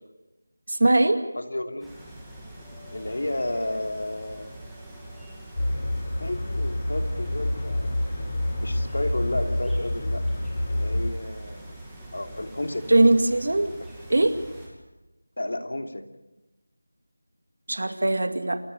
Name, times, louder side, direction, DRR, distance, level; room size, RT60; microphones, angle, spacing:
voice 1, 0.7-1.2 12.9-13.7 14.1-14.4 17.7-18.6, right 2 dB, 60° right, 8 dB, 2.4 m, -20 dB
voice 2, 1.4-1.9 2.9-4.5 6.2-8.0 8.6-10.2 10.7-11.8 12.1-12.9 15.4-16.1, left 1 dB, 75° left, 5 dB, 2.9 m, -32 dB
sound 1, 1.8-14.7, right 1 dB, ahead, 2.4 m, -43 dB
sound 2, 5.6-11.1, left 1 dB, 45° left, 3.0 m, -27 dB
28.5 x 14.0 x 9.4 m, 1.0 s
figure-of-eight pair, 175°, 0 cm